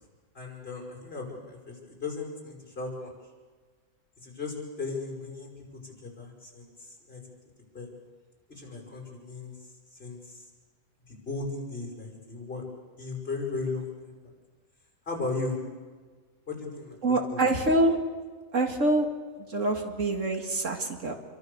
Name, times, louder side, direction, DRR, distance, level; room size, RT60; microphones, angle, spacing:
voice 1, 0.3-3.1 4.2-5.5 5.8-7.2 7.7-7.9 8.5-9.6 9.9-10.4 11.1-12.6 13.0-14.2 15.1-15.6 16.5-17.4, left 3 dB, 45° left, 0 dB, 5.9 m, -36 dB
voice 2, 17.0-18.0 18.5-19.1 19.4-21.1, right 2 dB, 65° right, 4 dB, 2.3 m, -25 dB
27.5 x 23.5 x 6.8 m, 1.5 s
omnidirectional pair, 1.4 m